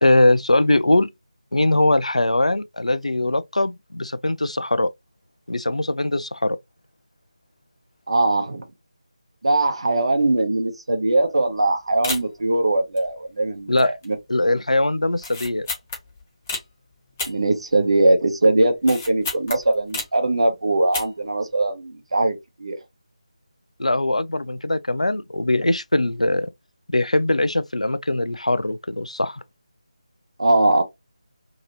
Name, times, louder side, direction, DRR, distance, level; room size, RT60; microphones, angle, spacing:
voice 1, 0.0-1.1 1.5-4.9 5.5-6.6 13.7-13.9 14.3-15.7 23.8-26.5 26.9-29.4, left 2 dB, 80° left, 0.4 m, -21 dB
voice 2, 8.1-8.6 9.4-14.1 17.3-22.8 30.4-30.8, right 2 dB, 55° right, 0.9 m, -21 dB
sound 1, 11.1-11.3 11.6-11.7 12.0-12.5 13.0-13.4 13.8-14.2 14.4-14.5 15.1-16.7 17.2-18.1 18.4-20.3 20.8-21.3 21.6-21.7, left 3 dB, 20° left, 0.8 m, -32 dB
2.9 x 2.6 x 2.8 m
figure-of-eight pair, 160°, 4 cm